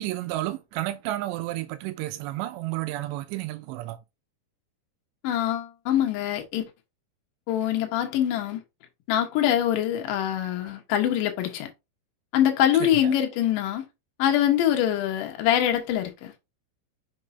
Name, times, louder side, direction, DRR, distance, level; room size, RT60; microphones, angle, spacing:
voice 1, 0.0-4.0 13.0-13.1, right 16 dB, 85° right, 2.6 m, -31 dB
voice 2, 5.2-6.6 7.5-8.6 9.1-11.7 12.3-13.8 14.2-16.3, left 11 dB, 75° left, 2.0 m, -24 dB
6.6 x 5.4 x 2.6 m
omnidirectional pair, 5.4 m